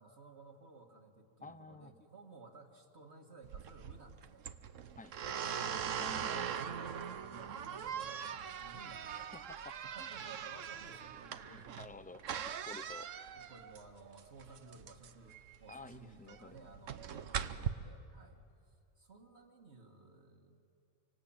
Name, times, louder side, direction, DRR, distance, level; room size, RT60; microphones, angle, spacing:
voice 1, 0.0-4.5 5.1-5.4 6.5-9.3 9.8-11.9 13.4-20.6, right 3 dB, 55° right, 3 dB, 2.2 m, -56 dB
voice 2, 1.4-1.9 5.0-5.2 6.0-6.5 9.6-9.7 10.0-10.1 11.4-13.1 15.7-16.7 17.3-17.5, left 3 dB, 10° left, 12 dB, 0.5 m, -52 dB
sound 1, 3.4-17.7, right 8 dB, 70° right, 1.2 m, -41 dB
27.0 x 25.0 x 8.8 m, 2.5 s
omnidirectional pair, 1.4 m